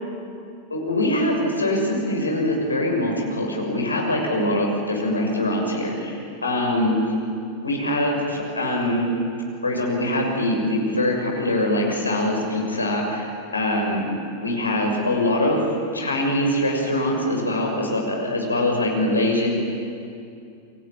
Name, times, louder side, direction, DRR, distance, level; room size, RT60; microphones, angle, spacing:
voice 1, 0.7-7.0 7.6-9.1 9.6-13.3 13.5-14.1 14.4-15.6 15.9-19.5, left 1 dB, 80° left, 0 dB, 6.5 m, -23 dB
29.0 x 23.0 x 8.8 m, 2.5 s
figure-of-eight pair, 90°, 0 cm